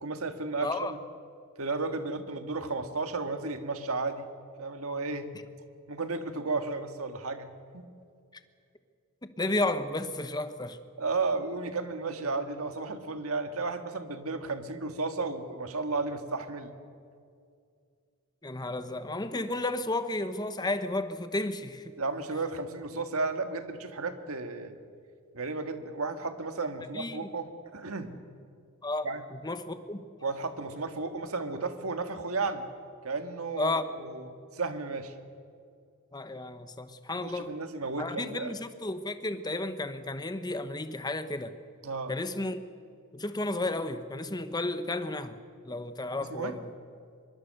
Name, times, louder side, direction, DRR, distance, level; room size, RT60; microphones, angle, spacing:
voice 1, 0.0-1.0 1.6-4.3 4.6-5.3 5.9-7.5 7.7-7.9 11.0-16.7 22.0-24.8 25.3-28.1 29.0-29.2 30.2-32.7 33.0-35.1 37.2-38.5 41.8-42.1 46.3-46.6, right 3 dB, 65° right, 1.7 m, -33 dB
voice 2, 0.6-0.9 9.4-10.8 18.4-21.9 26.9-27.3 28.8-30.0 33.6-33.9 36.1-37.6 38.0-41.5 42.1-42.6 43.1-46.6, left 2 dB, 20° left, 1.0 m, -33 dB
24.0 x 23.0 x 6.6 m
head